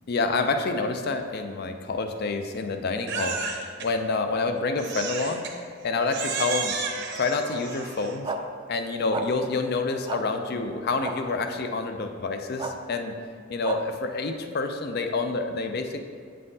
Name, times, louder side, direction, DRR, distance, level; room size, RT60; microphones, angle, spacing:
voice 1, 0.1-3.4 3.8-5.5 5.8-6.8 7.1-8.3 8.7-13.1 13.5-16.0, left 3 dB, 50° left, 6 dB, 0.4 m, -28 dB
Crying sobbing, 3.1-3.9 4.8-5.6 6.1-8.2, right 5 dB, 60° right, 0.7 m, -32 dB
sound 1, 8.2-8.4 9.1-9.3 10.1-10.2 11.0-11.1 12.6-12.7 13.6-13.8, right 3 dB, 20° right, 0.3 m, -30 dB
8.6 x 5.4 x 2.7 m, 2.1 s
head